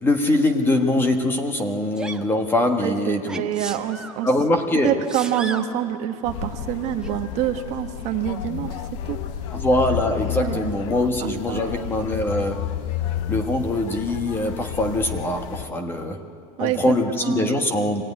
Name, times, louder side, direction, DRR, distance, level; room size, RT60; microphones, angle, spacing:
voice 1, 0.0-3.5 4.2-4.9 9.5-12.7 13.3-16.2 16.6-18.0, left 1 dB, 10° left, 5 dB, 1.3 m, -23 dB
Sneeze, 2.0-2.3 3.3-4.2 4.8-5.7 7.0-7.2, right 3 dB, 5° right, 0.8 m, -35 dB
voice 2, 2.8-4.3 4.8-8.8 9.1-9.2 10.3-10.7 11.2-11.9 16.6-16.8 17.2-17.6, right 11 dB, 40° right, 6 dB, 1.2 m, -26 dB
sound 1, 6.2-15.7, left 10 dB, 60° left, 0.9 m, -31 dB
24.5 x 17.5 x 9.8 m, 2.4 s
supercardioid pair, 165°, 18 cm